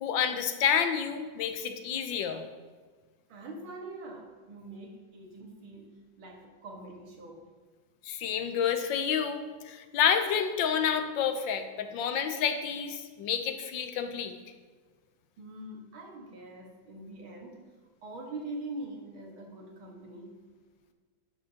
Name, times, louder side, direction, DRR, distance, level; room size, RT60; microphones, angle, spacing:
voice 1, 0.0-2.5 8.0-14.4, left 7 dB, 75° left, 8 dB, 1.5 m, -29 dB
voice 2, 3.3-5.9 6.2-7.4 15.4-17.7 18.0-20.4, right 2 dB, 90° right, 0 dB, 2.4 m, -43 dB
11.5 x 9.7 x 2.9 m, 1.5 s
omnidirectional pair, 2.1 m